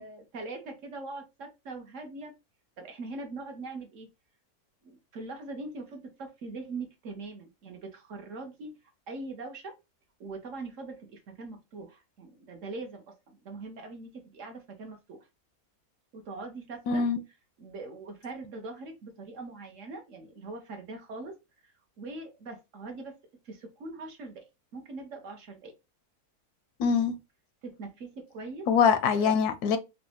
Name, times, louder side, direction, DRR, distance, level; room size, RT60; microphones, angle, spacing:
voice 1, 0.0-2.3 2.8-4.1 4.8-8.8 9.1-9.7 10.2-15.2 16.1-17.0 17.6-21.3 21.6-23.2 23.4-24.4 24.7-25.7 27.6-28.7 29.2-29.3, right 3 dB, 60° right, 1.1 m, -42 dB
voice 2, 16.9-17.2 26.8-27.1 28.7-29.8, left 6 dB, 85° left, 1.1 m, -23 dB
4.0 x 2.2 x 2.7 m
omnidirectional pair, 1.6 m